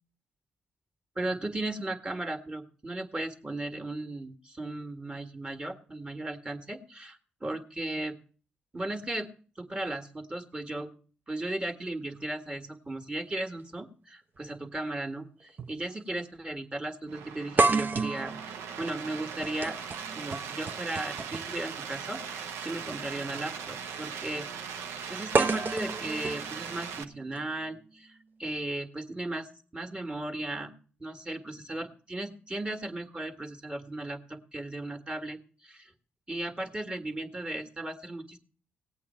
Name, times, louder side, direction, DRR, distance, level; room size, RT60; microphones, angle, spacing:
voice 1, 1.2-8.2 8.7-9.3 9.6-10.9 11.3-18.4 18.8-19.8 20.1-24.5 25.1-30.7 31.0-35.9 36.3-38.4, right 2 dB, 20° right, 6 dB, 1.8 m, -36 dB
sound 1, 14.4-14.5 15.6-15.8 16.1-16.2 17.6-21.6 22.8-23.0 25.3-27.4, right 3 dB, 45° right, 0.7 m, -30 dB
sound 2, 17.1-27.0, right 7 dB, 75° right, 0.8 m, -39 dB
17.5 x 8.4 x 4.4 m, 0.42 s
hypercardioid pair, 45°, 5 cm